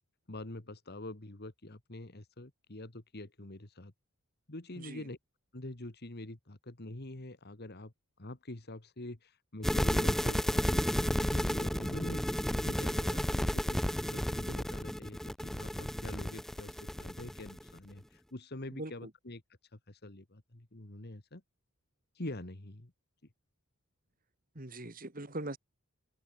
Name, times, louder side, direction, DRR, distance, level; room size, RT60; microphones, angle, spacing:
voice 1, 0.3-3.9 4.5-5.2 5.5-19.4 19.7-21.4 22.2-22.9, left 1 dB, 45° left, 1.8 m, -45 dB
sound 1, 9.6-17.7, equal, ahead, 0.4 m, -32 dB
voice 2, 24.6-25.6, right 2 dB, 40° right, 2.5 m, -40 dB
open air
head